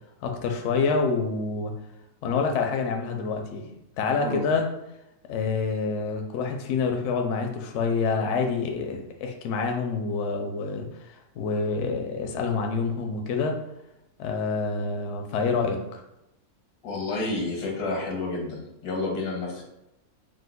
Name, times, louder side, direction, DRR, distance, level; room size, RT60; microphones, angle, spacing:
voice 1, 0.2-1.7 2.2-3.7 4.0-4.7 5.3-13.6 14.2-16.0, left 4 dB, 70° left, 3 dB, 0.7 m, -27 dB
voice 2, 16.8-19.6, left 2 dB, 90° left, -1 dB, 1.3 m, -30 dB
4.9 x 2.1 x 2.2 m, 0.88 s
omnidirectional pair, 1.6 m